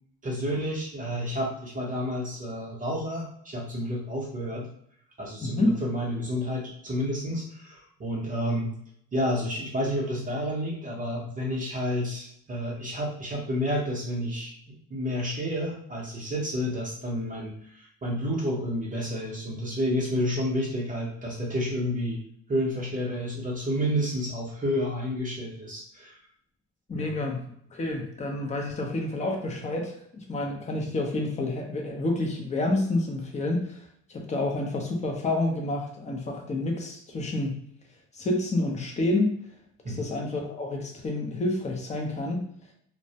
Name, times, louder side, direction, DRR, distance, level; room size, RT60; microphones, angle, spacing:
voice 1, 0.2-4.7 5.2-8.7 9.1-14.5 14.9-22.2 22.5-26.2 26.9-27.3 39.8-40.0, equal, 25° right, -3 dB, 0.7 m, -30 dB
voice 2, 5.4-5.8 26.9-37.6 38.1-39.3 39.9-42.4, left 2 dB, 20° left, 1 dB, 0.6 m, -29 dB
2.2 x 2.1 x 2.7 m, 0.68 s
cardioid pair, 100°, 34 cm